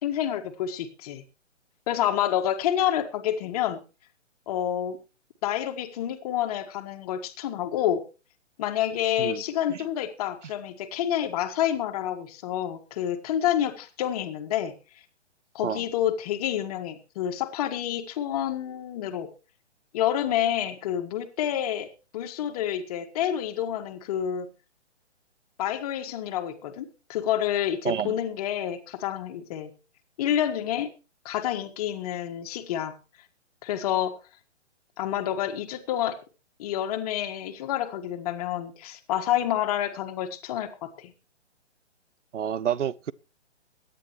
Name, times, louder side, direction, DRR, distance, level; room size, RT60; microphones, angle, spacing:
voice 1, 0.0-1.2 1.9-3.8 4.5-5.0 5.4-8.0 8.6-14.7 15.5-19.3 19.9-24.5 25.6-29.7 30.2-30.9 31.2-32.9 33.6-34.1 35.0-36.2 36.6-41.1, left 11 dB, 30° left, 1.6 m, -28 dB
voice 2, 27.8-28.1 42.3-43.1, right 9 dB, 75° right, 0.7 m, -29 dB
23.0 x 10.0 x 3.0 m
figure-of-eight pair, 140°, 36 cm